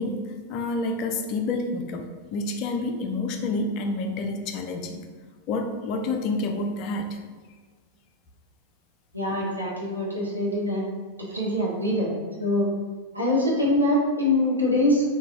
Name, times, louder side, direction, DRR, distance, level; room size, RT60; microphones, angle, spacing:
voice 1, 0.0-5.1 5.5-7.2, left 2 dB, 40° left, 5 dB, 0.4 m, -29 dB
voice 2, 9.1-10.9 11.2-12.1 12.4-12.7 13.1-15.0, left 1 dB, 85° right, -5 dB, 0.8 m, -24 dB
3.4 x 2.2 x 3.1 m, 1.5 s
figure-of-eight pair, 90°, 0 cm